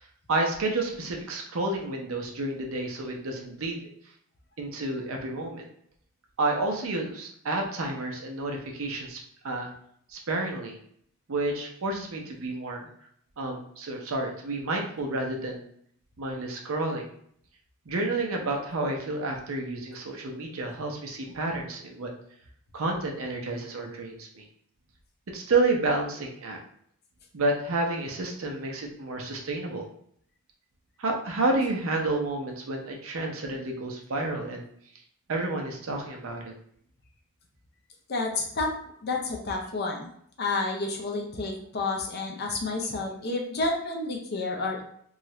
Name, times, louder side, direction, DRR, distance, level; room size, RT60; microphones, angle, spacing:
voice 1, 0.3-3.9 4.6-5.7 6.4-9.2 9.4-9.7 10.1-10.8 11.3-12.9 13.4-15.7 16.2-17.1 17.9-22.1 22.7-24.4 25.3-26.6 27.3-29.8 31.0-34.7 35.3-36.5, right 2 dB, 65° right, 1 dB, 0.6 m, -30 dB
voice 2, 38.1-38.7 39.0-40.1 40.4-44.9, left 3 dB, 45° left, 1 dB, 0.5 m, -30 dB
2.7 x 2.4 x 3.1 m, 0.66 s
head